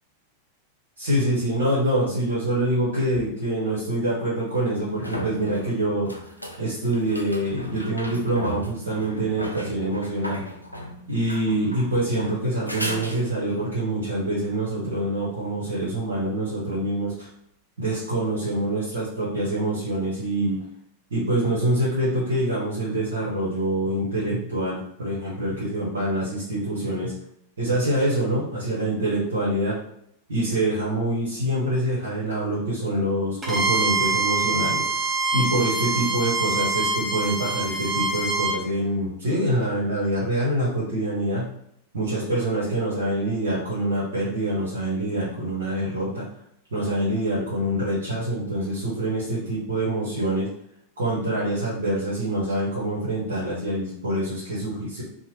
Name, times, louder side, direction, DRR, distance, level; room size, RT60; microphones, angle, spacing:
voice 1, 1.0-6.2 6.6-10.4 11.1-17.3 17.8-20.6 21.1-27.1 27.6-29.8 30.3-34.8 35.3-41.5 41.9-46.2 46.7-50.5 51.0-55.0, right 1 dB, 65° right, -7 dB, 0.9 m, -25 dB
sound 1, 3.1-3.2 4.5-13.7 17.1-17.2, equal, 90° left, 0.4 m, -36 dB
Bowed string instrument, 33.4-38.6, right 3 dB, 20° right, 0.7 m, -25 dB
2.8 x 2.1 x 3.1 m, 0.73 s
figure-of-eight pair, 90°, 0 cm